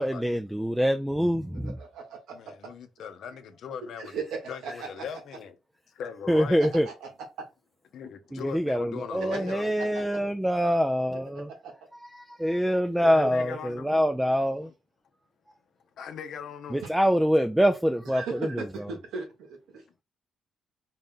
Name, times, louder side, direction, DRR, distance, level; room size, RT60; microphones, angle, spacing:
voice 1, 0.0-1.8 6.3-6.9 8.3-11.5 12.1-14.7 16.7-18.9, equal, 5° right, 0.3 m, -25 dB
voice 2, 1.6-2.5 4.0-4.9 6.8-7.1 7.4-7.5 9.2-9.4 9.9-10.0 11.3-11.7 13.0-13.3 16.8-16.9 18.1-19.8, right 5 dB, 85° right, 1.3 m, -37 dB
voice 3, 2.3-4.1 4.5-5.6 6.0-6.6 7.9-9.9 13.1-13.9 16.0-16.8, left 7 dB, 70° left, 0.6 m, -39 dB
4.0 x 2.1 x 3.7 m
cardioid pair, 90°, 0 cm